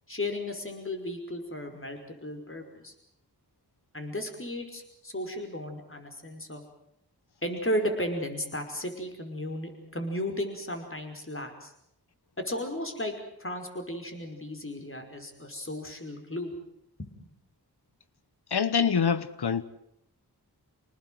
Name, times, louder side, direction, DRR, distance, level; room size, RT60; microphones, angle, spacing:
voice 1, 0.1-2.9 3.9-6.6 7.4-11.7 12.4-16.6 17.0-17.1, left 1 dB, 35° left, 5.3 m, -34 dB
voice 2, 18.5-19.6, left 6 dB, 80° left, 1.2 m, -25 dB
27.0 x 19.5 x 7.9 m
cardioid pair, 45°, 39 cm